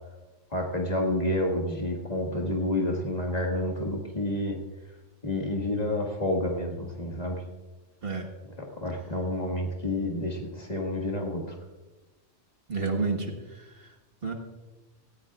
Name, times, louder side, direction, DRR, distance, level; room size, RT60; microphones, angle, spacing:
voice 1, 0.5-4.6 5.2-7.4 8.6-11.6, left 1 dB, 35° left, 0 dB, 1.9 m, -29 dB
voice 2, 12.7-13.9 14.2-14.3, right 4 dB, 50° right, 3 dB, 1.5 m, -30 dB
17.5 x 16.0 x 2.4 m, 1.1 s
omnidirectional pair, 1.3 m